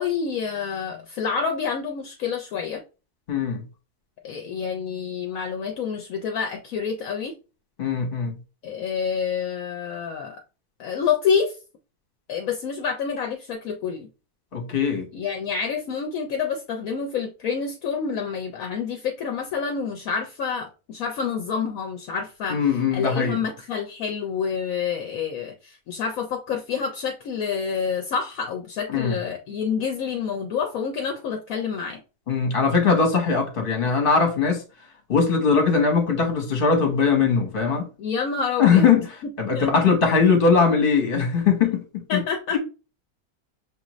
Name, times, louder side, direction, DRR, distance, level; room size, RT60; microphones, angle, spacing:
voice 1, 0.0-2.8 4.2-7.3 8.6-10.4 10.8-11.6 12.3-14.1 15.1-32.0 38.0-39.1 39.5-39.9 42.1-42.6, left 6 dB, 70° left, 1.0 m, -28 dB
voice 2, 3.3-3.6 7.8-8.3 14.5-15.0 22.5-23.4 28.9-29.2 32.3-34.6 35.1-37.9 38.6-39.0 39.4-41.8 42.1-42.2, left 5 dB, 40° left, 1.2 m, -20 dB
6.1 x 2.6 x 3.0 m
omnidirectional pair, 1.6 m